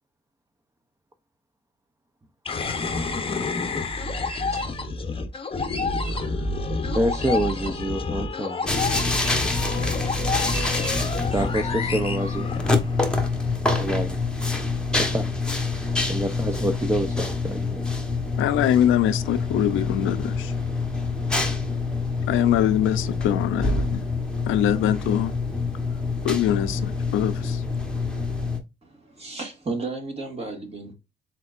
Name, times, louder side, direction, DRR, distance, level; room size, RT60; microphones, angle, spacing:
sound 1, 2.5-13.1, left 3 dB, 25° left, 0.8 m, -28 dB
voice 1, 6.1-6.5 6.9-8.7 11.3-12.6 13.8-14.2 15.0-15.3 16.1-17.9, right 1 dB, 15° right, 0.6 m, -27 dB
sound 2, 8.7-28.6, left 3 dB, 5° left, 1.1 m, -26 dB
voice 2, 18.4-20.5 22.3-24.0 24.5-25.3 26.2-27.6, left 11 dB, 85° left, 0.6 m, -23 dB
voice 3, 28.8-30.9, right 3 dB, 30° right, 1.9 m, -33 dB
4.2 x 4.0 x 2.5 m
cardioid pair, 90°, 20 cm